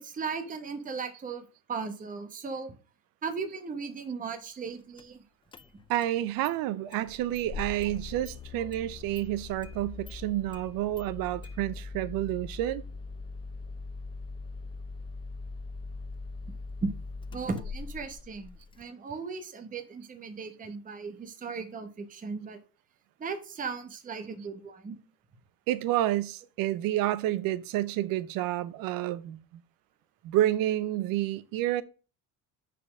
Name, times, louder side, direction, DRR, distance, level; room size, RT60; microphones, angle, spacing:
voice 1, 0.0-2.8 3.2-5.2 16.5-16.6 16.8-16.9 17.3-22.6 23.2-25.0, right 4 dB, 20° right, 1.0 m, -37 dB
Engine starting, 5.0-5.1 5.5-6.1 6.4-6.5 6.9-18.8, left 4 dB, 15° left, 0.3 m, -41 dB
voice 2, 5.9-12.8 25.7-29.4 30.2-31.8, right 14 dB, 65° right, 0.7 m, -29 dB
5.4 x 4.4 x 6.1 m
cardioid pair, 125°, 37 cm